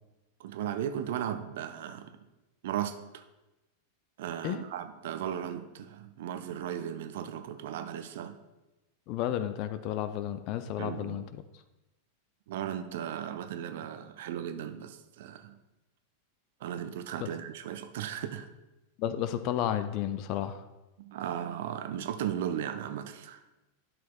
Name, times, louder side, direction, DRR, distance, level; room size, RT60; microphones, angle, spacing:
voice 1, 0.4-2.1 2.6-3.2 4.2-8.4 10.8-11.2 12.5-15.6 16.6-18.5 21.0-23.4, right 9 dB, 55° right, 8 dB, 0.5 m, -36 dB
voice 2, 9.1-11.2 19.0-20.6, left 11 dB, 40° left, 11 dB, 0.4 m, -32 dB
11.0 x 5.9 x 2.3 m, 1.0 s
figure-of-eight pair, 90°, 0 cm